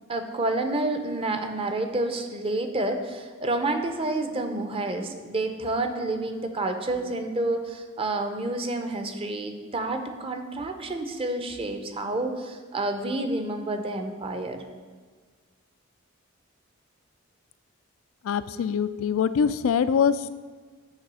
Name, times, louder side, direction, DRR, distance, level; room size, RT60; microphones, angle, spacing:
voice 1, 0.1-14.6, right 2 dB, 25° right, 6 dB, 0.6 m, -29 dB
voice 2, 18.2-20.2, left 7 dB, 80° left, 14 dB, 0.3 m, -23 dB
9.7 x 3.3 x 6.2 m, 1.5 s
head